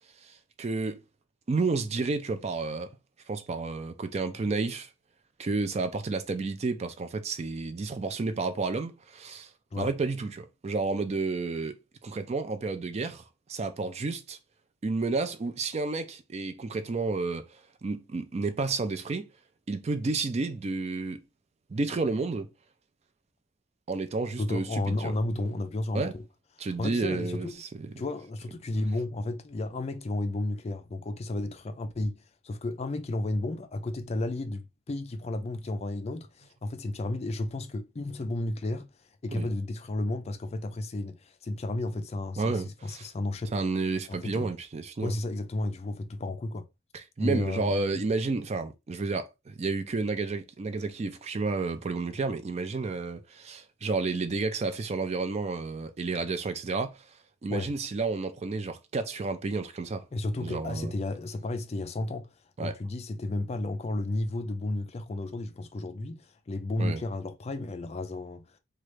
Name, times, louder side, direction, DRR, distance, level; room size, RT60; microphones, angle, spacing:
voice 1, 0.2-1.0 1.5-2.9 3.3-4.9 5.4-9.5 9.8-11.8 12.0-14.4 14.8-17.5 17.8-19.3 19.7-21.2 21.7-22.5 23.9-25.1 25.9-26.1 26.6-27.9 39.3-39.5 42.4-43.1 43.5-45.2 46.9-57.1 57.4-60.0 60.4-60.9 62.6-62.7 66.8-67.0, right 3 dB, 35° right, 0.4 m, -31 dB
voice 2, 24.4-26.2 26.6-27.5 28.0-38.9 39.2-43.6 44.1-44.5 45.0-46.7 47.2-48.0 57.5-57.7 60.1-62.3 62.6-68.6, left 2 dB, 35° left, 0.4 m, -33 dB
3.1 x 2.3 x 3.1 m
head